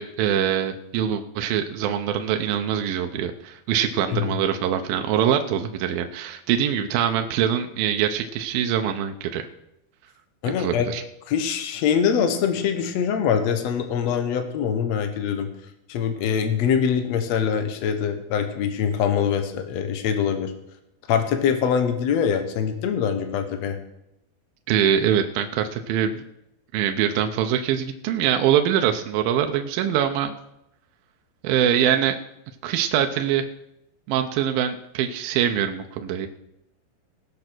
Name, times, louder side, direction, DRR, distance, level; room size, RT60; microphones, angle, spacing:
voice 1, 0.0-9.5 10.6-11.0 24.7-26.2 26.7-30.3 31.4-32.2 32.6-33.5 34.1-36.3, right 9 dB, 75° right, 6 dB, 2.3 m, -23 dB
voice 2, 10.4-10.9 11.3-15.5 15.9-20.5 21.1-23.8, left 7 dB, 90° left, 7 dB, 1.5 m, -23 dB
18.0 x 6.6 x 6.1 m, 0.82 s
omnidirectional pair, 4.9 m